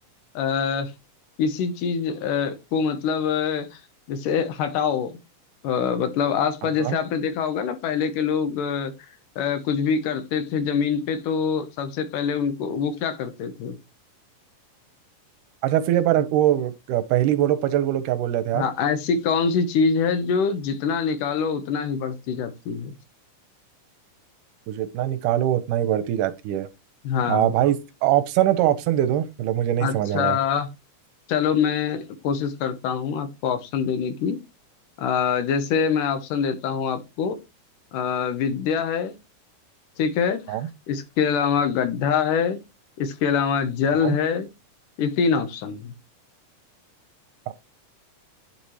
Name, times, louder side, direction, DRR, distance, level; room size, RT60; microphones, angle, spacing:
voice 1, 0.3-0.9 1.4-3.7 4.1-5.2 5.6-8.9 9.4-13.8 18.5-22.9 27.0-27.5 29.8-30.7 31.3-34.4 35.0-37.4 37.9-39.1 40.0-40.6 40.9-42.6 43.0-44.5 45.0-45.9, left 6 dB, 80° left, 2.6 m, -24 dB
voice 2, 15.6-18.6 24.7-26.7 27.3-27.8 28.0-30.4 40.5-40.7 44.0-44.2 47.5-47.6, right 12 dB, 80° right, 2.2 m, -22 dB
10.5 x 4.2 x 3.1 m
omnidirectional pair, 3.8 m